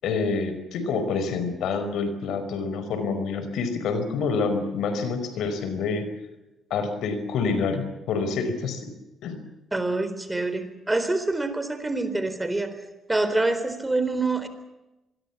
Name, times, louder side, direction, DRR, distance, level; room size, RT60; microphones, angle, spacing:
voice 1, 0.0-6.0 6.7-8.9 9.2-9.4, left 4 dB, 80° left, 10 dB, 5.1 m, -27 dB
voice 2, 9.7-12.8 13.1-14.5, right 2 dB, 15° right, 10 dB, 4.1 m, -26 dB
25.5 x 22.5 x 7.3 m, 0.97 s
cardioid pair, 90°, 0 cm